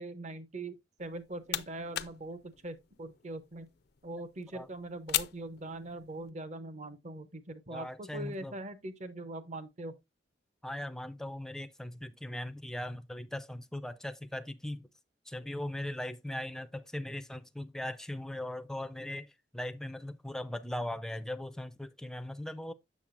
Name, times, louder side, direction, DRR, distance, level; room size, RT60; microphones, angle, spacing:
voice 1, 0.0-3.7 4.0-9.9, right 2 dB, 40° right, 0.8 m, -42 dB
sound 1, 1.0-6.3, left 13 dB, 60° left, 0.5 m, -40 dB
voice 2, 7.7-8.6 10.6-14.9 15.3-22.7, left 1 dB, 5° left, 0.4 m, -39 dB
7.3 x 6.7 x 2.5 m
head